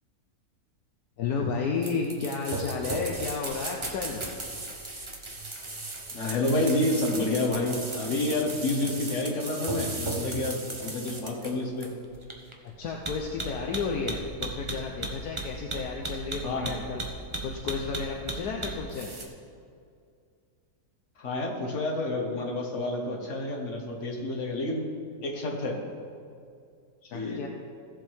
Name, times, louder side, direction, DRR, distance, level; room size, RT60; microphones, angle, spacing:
voice 1, 1.2-4.2 12.6-17.0 17.4-19.1 27.0-27.5, left 5 dB, 70° left, 0 dB, 1.3 m, -32 dB
sound 1, 1.8-19.2, right 2 dB, 25° right, 0.8 m, -35 dB
voice 2, 6.1-11.9 16.4-16.8 21.2-24.9 25.2-25.8 27.1-27.4, left 2 dB, 50° left, 0 dB, 1.8 m, -29 dB
16.5 x 7.4 x 3.5 m, 2.3 s
omnidirectional pair, 1.7 m